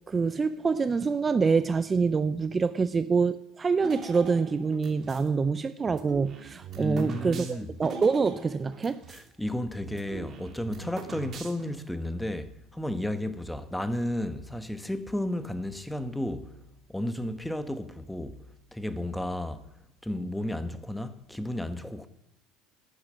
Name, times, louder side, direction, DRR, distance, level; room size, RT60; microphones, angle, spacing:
voice 1, 0.1-9.0, right 5 dB, 25° right, 0.5 m, -26 dB
sound 1, 3.8-5.3 5.8-9.3 9.5-9.6 9.8-11.8, right 5 dB, 40° right, 3.0 m, -42 dB
voice 2, 6.8-7.7 9.1-16.6 16.9-18.4 18.7-19.6 20.0-22.1, left 1 dB, 5° left, 1.1 m, -33 dB
10.5 x 10.5 x 7.5 m
supercardioid pair, 95°, 0 cm